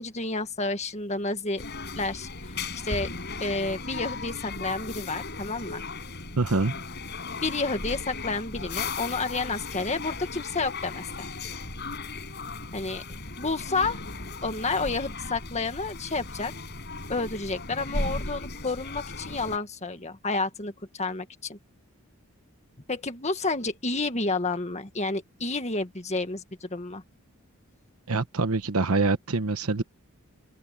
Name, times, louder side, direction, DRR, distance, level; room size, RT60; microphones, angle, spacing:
voice 1, 0.0-1.6 2.0-3.1 3.4-5.9 7.4-11.3 12.7-13.0 13.4-14.0 14.4-16.5 17.1-21.6 22.9-27.0, left 3 dB, 30° left, 1.9 m, -30 dB
sound 1, 1.6-19.6, left 3 dB, 50° left, 8.0 m, -36 dB
voice 2, 6.4-6.7 28.1-29.8, right 3 dB, 85° right, 1.1 m, -25 dB
open air
head